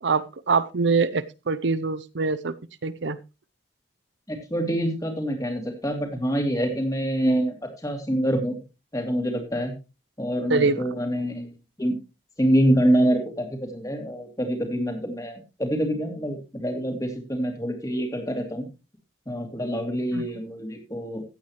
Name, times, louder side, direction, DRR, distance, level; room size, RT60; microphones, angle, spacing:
voice 1, 0.0-2.5 2.8-3.2 10.5-10.8 20.1-20.2, right 4 dB, 70° right, 16 dB, 0.6 m, -24 dB
voice 2, 4.3-7.6 7.8-8.6 8.9-9.7 10.2-12.0 12.4-18.7 19.3-21.2, equal, 20° left, 4 dB, 2.7 m, -26 dB
15.5 x 8.7 x 3.1 m, 0.28 s
head